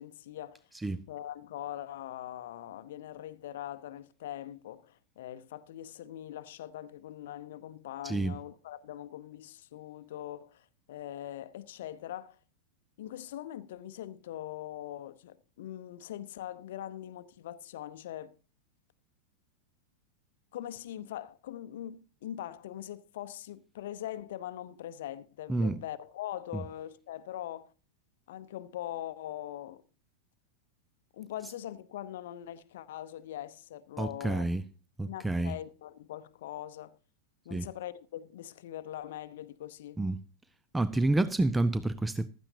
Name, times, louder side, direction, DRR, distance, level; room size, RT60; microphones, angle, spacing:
voice 1, 0.0-0.6 1.1-12.4 13.0-18.4 20.5-27.7 28.3-29.8 31.1-34.5 35.1-37.0 37.4-40.0, left 12 dB, 55° left, 0.7 m, -42 dB
voice 2, 8.0-8.4 25.5-25.8 26.5-26.6 34.0-34.6 35.0-35.6 37.5-37.7 40.0-40.2 40.7-42.3, right 2 dB, 10° right, 0.5 m, -29 dB
15.5 x 13.0 x 2.8 m
figure-of-eight pair, 90°, 0 cm